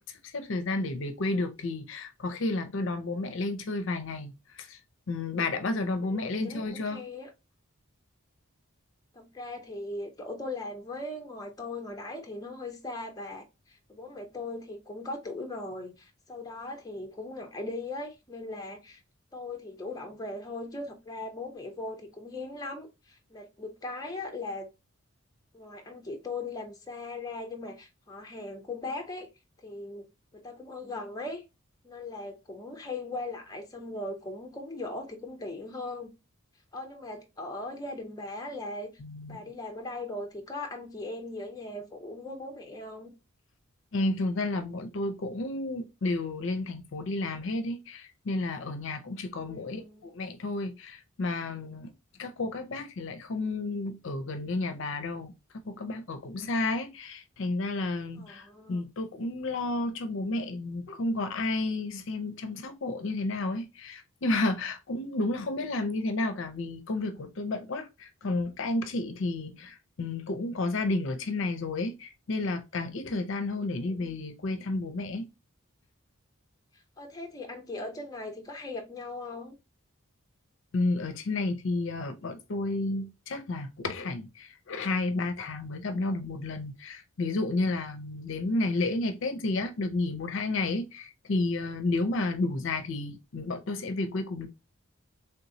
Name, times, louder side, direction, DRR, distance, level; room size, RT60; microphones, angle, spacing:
voice 1, 0.0-4.8 5.1-7.0 39.0-39.4 43.9-51.9 52.2-75.3 80.7-94.5, left 2 dB, 60° left, 0.5 m, -31 dB
voice 2, 5.9-7.3 9.1-19.0 19.3-24.7 25.5-29.3 29.6-31.4 31.8-36.1 36.7-39.0 39.3-43.1 49.3-50.1 58.2-58.8 73.7-74.1 77.0-79.6, left 2 dB, 15° left, 0.6 m, -39 dB
3.4 x 2.9 x 2.6 m
head